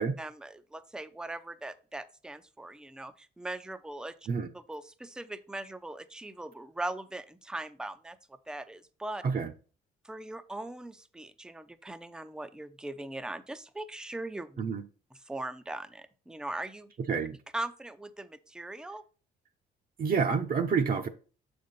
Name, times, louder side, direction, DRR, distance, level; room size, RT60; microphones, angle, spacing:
voice 1, 0.2-4.2 4.5-8.2 8.5-9.2 10.0-14.6 15.3-16.9 17.5-19.0, right 2 dB, 5° right, 0.5 m, -40 dB
voice 2, 20.0-21.1, right 5 dB, 45° right, 0.8 m, -28 dB
6.5 x 5.1 x 4.1 m
cardioid pair, 90°, 20 cm